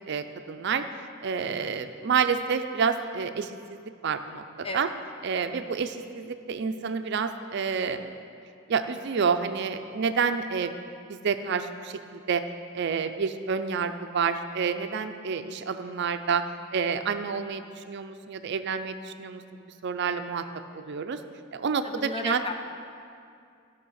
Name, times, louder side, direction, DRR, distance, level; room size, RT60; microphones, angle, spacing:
voice 1, 0.1-0.8 1.2-3.8 4.0-4.4 4.7-4.9 5.2-8.1 8.7-10.7 11.1-12.4 12.7-16.4 16.7-19.4 19.8-20.4 20.7-21.2 21.5-22.4, right 6 dB, 55° right, 9 dB, 0.4 m, -29 dB
voice 2, 21.8-22.5, left 2 dB, 30° left, 5 dB, 0.7 m, -33 dB
11.5 x 5.8 x 6.3 m, 2.4 s
head